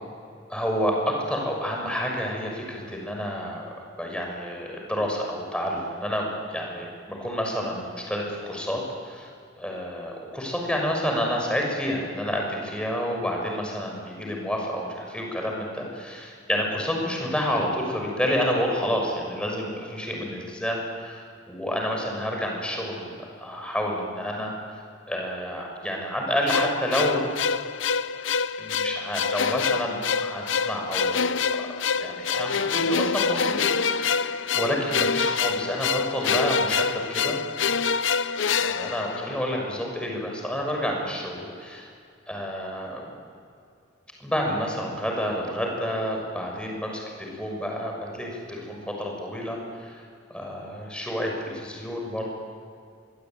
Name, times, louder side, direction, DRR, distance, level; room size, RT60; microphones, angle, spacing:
voice 1, 0.5-9.3 9.6-24.8 25.1-27.2 28.6-37.4 38.6-41.9 42.3-43.1 44.2-50.0 50.3-52.2, equal, 5° left, 0 dB, 6.5 m, -29 dB
sound 1, 26.5-39.7, left 6 dB, 85° left, 0.8 m, -26 dB
25.0 x 23.5 x 9.0 m, 2.3 s
head